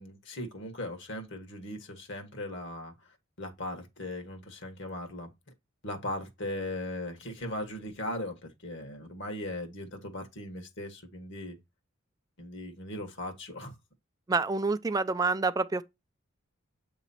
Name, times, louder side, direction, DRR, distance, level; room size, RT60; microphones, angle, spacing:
voice 1, 0.0-2.9 3.4-5.3 5.8-11.6 12.4-13.8, left 1 dB, 60° left, 1.4 m, -38 dB
voice 2, 14.3-15.8, right 3 dB, 20° right, 0.3 m, -27 dB
7.8 x 3.0 x 4.1 m
head